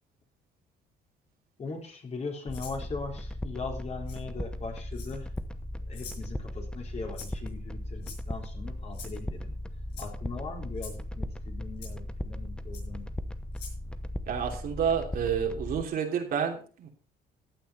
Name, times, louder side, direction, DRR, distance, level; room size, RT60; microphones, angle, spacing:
voice 1, 1.6-5.3 5.9-9.6 10.0-13.1, left 4 dB, 40° left, 1 dB, 3.8 m, -39 dB
Rattle (instrument), 2.5-2.8 4.1-4.2 4.9-5.4 5.9-6.2 7.1-7.5 8.0-8.4 8.9-9.2 9.9-10.1 10.8-11.0 11.8-11.9 12.7-12.8 13.5-13.8, left 6 dB, 80° left, 6.0 m, -45 dB
sound 1, 2.5-15.9, left 1 dB, 5° left, 0.9 m, -37 dB
voice 2, 14.3-16.9, right 7 dB, 60° right, 2 dB, 2.9 m, -29 dB
15.0 x 9.2 x 4.2 m, 0.40 s
cardioid pair, 110°, 17 cm